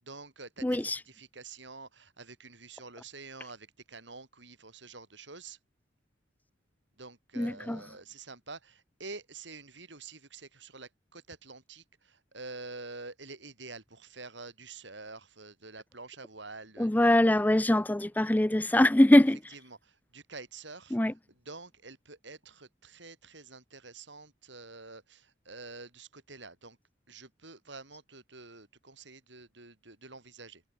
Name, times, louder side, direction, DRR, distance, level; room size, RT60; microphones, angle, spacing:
voice 1, 0.0-5.6 7.0-17.1 19.5-26.8 27.1-30.6, right 3 dB, 65° right, 6.5 m, -47 dB
voice 2, 0.6-1.0 7.4-7.8 16.8-19.4 20.9-21.1, left 1 dB, 10° left, 0.4 m, -23 dB
head